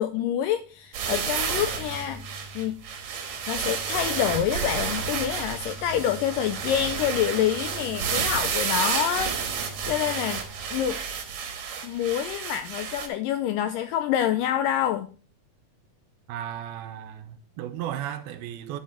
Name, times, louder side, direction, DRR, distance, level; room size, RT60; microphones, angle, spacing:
voice 1, 0.0-2.2 2.6-2.8 3.5-10.4 10.7-11.0 11.8-15.1, left 10 dB, 85° left, 1.9 m, -27 dB
sound 1, 0.7-11.3, equal, 55° left, 2.1 m, -46 dB
sound 2, 0.9-13.1, right 6 dB, 60° right, 2.1 m, -30 dB
voice 2, 16.3-18.8, right 11 dB, 85° right, 2.7 m, -35 dB
12.0 x 4.9 x 4.3 m
omnidirectional pair, 4.4 m